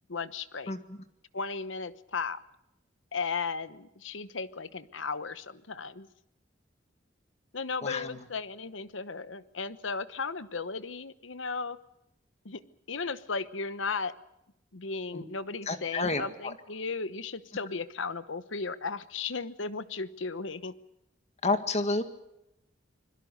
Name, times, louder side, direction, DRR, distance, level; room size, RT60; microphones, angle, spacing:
voice 1, 0.1-0.7 1.3-2.4 3.1-6.1 7.5-11.8 12.4-12.6 12.9-14.1 14.7-20.7, left 4 dB, 80° left, 14 dB, 1.1 m, -35 dB
voice 2, 15.7-16.2 21.4-22.0, left 3 dB, 35° left, 8 dB, 1.9 m, -29 dB
25.5 x 22.0 x 6.7 m, 0.86 s
head